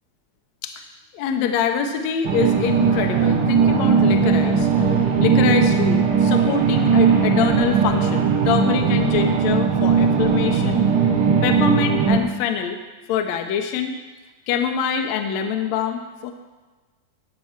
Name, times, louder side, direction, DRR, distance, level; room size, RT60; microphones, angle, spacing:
voice 1, 1.1-10.8 11.4-12.8 13.1-14.0 14.5-16.3, left 7 dB, 75° left, 5 dB, 1.8 m, -25 dB
sound 1, 2.2-12.2, right 6 dB, 90° right, 0.9 m, -18 dB
12.0 x 4.5 x 7.2 m, 1.3 s
omnidirectional pair, 3.4 m